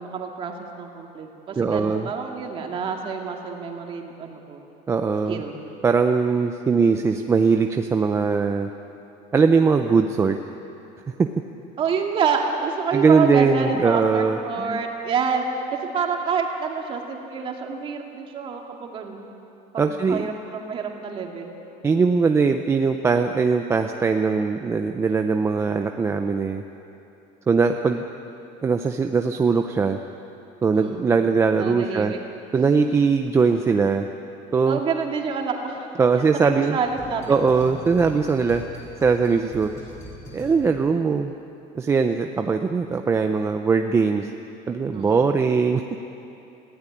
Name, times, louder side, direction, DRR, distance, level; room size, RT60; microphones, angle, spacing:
voice 1, 0.0-4.6 5.3-5.6 11.8-19.3 19.7-21.5 30.7-31.0 31.6-32.2 32.5-32.7 34.7-35.9 36.3-37.2 44.9-45.2, right 5 dB, 35° right, 2 dB, 2.3 m, -28 dB
voice 2, 1.6-2.1 4.9-5.4 5.8-8.7 9.3-10.4 11.2-11.3 12.9-14.8 19.8-20.3 21.8-26.6 27.5-28.0 28.6-30.0 30.6-32.1 32.5-34.1 34.5-34.8 36.0-36.8 37.3-38.6 39.0-39.7 40.3-41.3 41.7-44.3 44.7-46.0, right 5 dB, 15° right, 6 dB, 0.6 m, -20 dB
sound 1, 36.8-41.0, left 1 dB, 15° left, 6.8 m, -41 dB
19.0 x 16.0 x 10.0 m, 2.9 s
cardioid pair, 165°, 16 cm